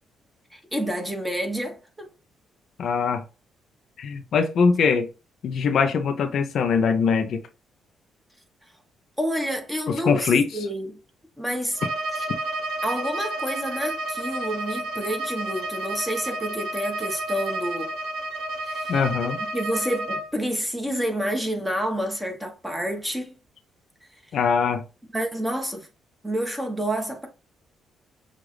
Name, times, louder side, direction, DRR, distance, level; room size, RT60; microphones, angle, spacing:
voice 1, 0.5-2.1 9.2-11.0 11.4-11.8 12.1-12.3 12.8-17.9 18.6-19.0 19.4-23.4 25.1-25.9 26.2-27.3, equal, 5° right, 1.4 m, -29 dB
voice 2, 2.8-3.2 4.0-5.1 5.4-7.4 9.9-10.5 18.9-19.4 24.3-24.8, left 5 dB, 65° left, 0.6 m, -22 dB
Bowed string instrument, 11.7-20.3, right 2 dB, 75° right, 0.9 m, -31 dB
6.3 x 2.5 x 3.3 m
cardioid pair, 90°, 0 cm